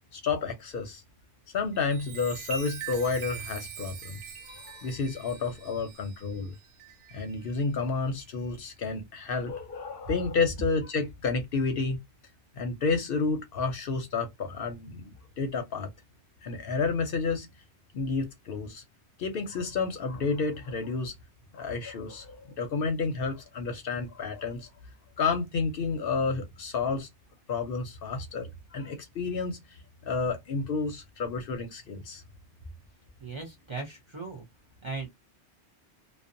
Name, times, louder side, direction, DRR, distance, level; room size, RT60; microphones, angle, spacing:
voice 1, 0.1-1.0 1.5-4.2 4.5-6.5 7.1-12.0 12.6-15.9 16.4-17.5 17.9-18.8 19.2-21.1 21.5-24.7 25.2-27.1 27.5-32.2, left 4 dB, 60° left, 0.7 m, -30 dB
Chime, 1.6-7.6 8.2-8.5, right 7 dB, 90° right, 0.9 m, -43 dB
voice 2, 33.2-34.4 34.8-35.1, right 4 dB, 35° right, 0.5 m, -37 dB
2.6 x 2.1 x 2.5 m
omnidirectional pair, 1.2 m